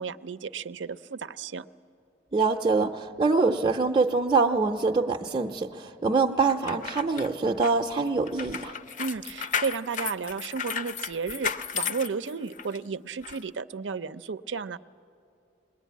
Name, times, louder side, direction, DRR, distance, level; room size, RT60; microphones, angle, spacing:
voice 1, 0.0-1.7 9.0-14.8, right 5 dB, 90° right, 14 dB, 0.5 m, -33 dB
voice 2, 2.3-8.7, right 4 dB, 25° right, 2 dB, 0.6 m, -24 dB
sound 1, 6.5-12.8 13.2-13.4, left 7 dB, 45° left, 0.6 m, -34 dB
22.0 x 20.5 x 9.3 m, 2.6 s
head